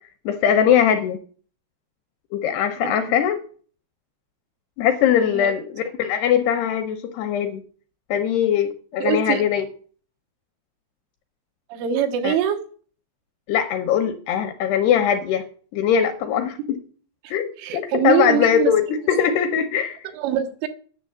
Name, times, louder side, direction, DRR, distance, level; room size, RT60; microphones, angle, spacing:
voice 1, 0.3-1.2 2.3-3.4 4.8-7.6 8.1-9.7 12.2-12.3 13.5-15.5 15.7-16.8 17.3-20.0, left 9 dB, 80° left, 7 dB, 2.4 m, -21 dB
voice 2, 9.0-9.4 11.7-12.6 17.2-18.7 20.1-20.7, right 9 dB, 90° right, 6 dB, 3.7 m, -23 dB
10.0 x 6.8 x 8.4 m, 0.43 s
omnidirectional pair, 5.5 m